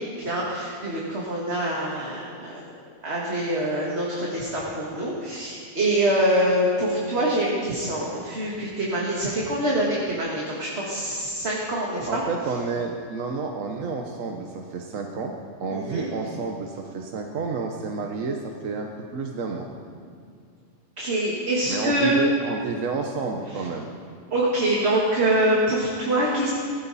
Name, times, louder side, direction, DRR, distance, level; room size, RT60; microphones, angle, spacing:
voice 1, 0.0-2.5 3.0-12.2 15.7-16.1 21.0-22.1 24.3-26.5, right 1 dB, 55° right, -4 dB, 2.3 m, -25 dB
voice 2, 12.1-19.7 21.7-23.9, right 4 dB, 80° right, 2 dB, 1.4 m, -30 dB
17.0 x 15.5 x 4.1 m, 2.3 s
omnidirectional pair, 1.3 m